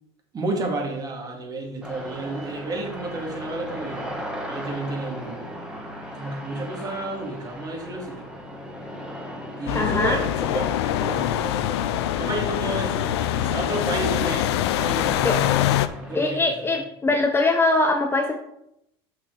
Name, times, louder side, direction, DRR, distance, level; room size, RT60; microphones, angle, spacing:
voice 1, 0.3-4.1 4.5-5.5 6.1-8.3 9.6-10.7 10.9-11.8 12.2-16.6 17.1-17.2, right 2 dB, 30° right, 2 dB, 2.0 m, -31 dB
sound 1, 1.8-16.3, equal, 5° right, 1.5 m, -38 dB
sound 2, 9.7-15.9, left 12 dB, 75° left, 0.5 m, -24 dB
voice 2, 9.7-10.2 15.2-15.4 16.1-18.4, left 2 dB, 15° left, 4 dB, 0.8 m, -22 dB
6.0 x 5.8 x 4.5 m, 0.80 s
hypercardioid pair, 100°, 14 cm